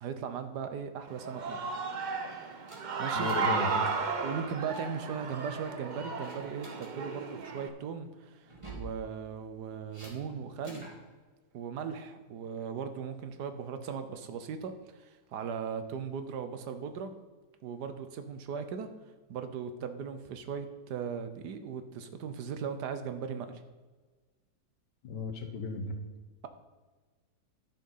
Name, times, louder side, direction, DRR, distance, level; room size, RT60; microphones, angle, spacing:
voice 1, 0.0-1.6 3.0-3.3 4.2-10.9 11.5-17.1 17.6-18.9 19.3-23.6, right 6 dB, 80° right, 9 dB, 1.4 m, -38 dB
Human voice / Cheering, 1.1-7.7, right 4 dB, 50° right, 0.5 m, -34 dB
sound 1, 2.7-3.6 3.8-4.1 4.4-4.8 5.4-5.7 6.2-6.9 8.4-8.9 9.9-10.1 10.6-11.0, right 2 dB, 20° right, 1.9 m, -48 dB
voice 2, 3.2-3.9 25.0-26.0, left 3 dB, 85° left, 6 dB, 1.7 m, -35 dB
10.5 x 6.1 x 5.6 m, 1.3 s
omnidirectional pair, 1.8 m